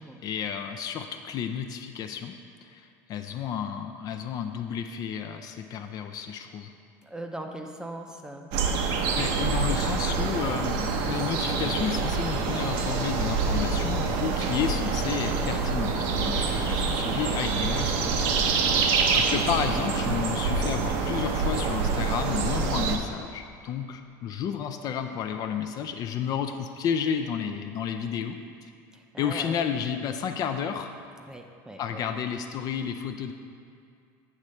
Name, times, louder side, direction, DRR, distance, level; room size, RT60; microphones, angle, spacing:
voice 1, 0.2-2.3 2.6-6.7 9.2-28.7 29.2-30.9 31.8-33.3, left 8 dB, 45° left, 6 dB, 0.4 m, -32 dB
voice 2, 7.0-8.5 16.2-16.5 18.6-19.0 28.9-29.7 31.2-32.0, right 1 dB, 5° right, 3 dB, 0.5 m, -40 dB
sound 1, 8.5-23.0, right 4 dB, 65° right, 0.7 m, -26 dB
8.4 x 3.2 x 6.4 m, 2.4 s
supercardioid pair, 130°, 9 cm